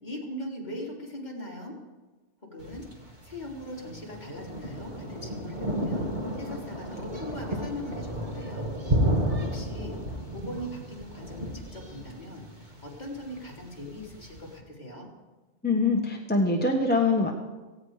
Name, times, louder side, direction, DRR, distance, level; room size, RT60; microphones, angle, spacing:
voice 1, 0.0-1.8 2.4-2.9 3.2-6.1 6.4-8.7 9.0-15.1, left 1 dB, 40° left, -3 dB, 3.8 m, -40 dB
Thunder, 2.6-14.5, right 1 dB, 40° right, 2.0 m, -33 dB
voice 2, 15.6-17.3, left 3 dB, 10° left, 1 dB, 1.2 m, -24 dB
17.5 x 16.5 x 4.9 m, 1.2 s
omnidirectional pair, 1.2 m